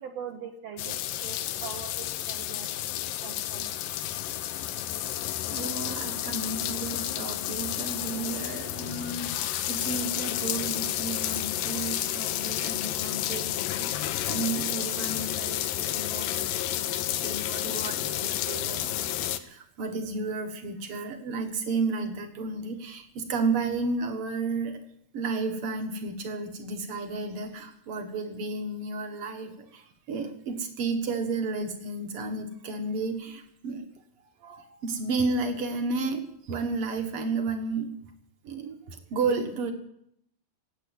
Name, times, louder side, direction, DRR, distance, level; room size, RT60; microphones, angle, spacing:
voice 1, 0.0-2.8 3.2-3.7, right 7 dB, 70° right, 5 dB, 1.5 m, -42 dB
sound 1, 0.8-19.4, left 12 dB, 75° left, 2.2 m, -31 dB
voice 2, 5.5-9.4 9.7-24.8 25.1-33.8 34.4-37.9 38.4-39.7, right 3 dB, 50° right, 5 dB, 1.8 m, -32 dB
17.0 x 8.3 x 8.2 m, 0.73 s
omnidirectional pair, 4.5 m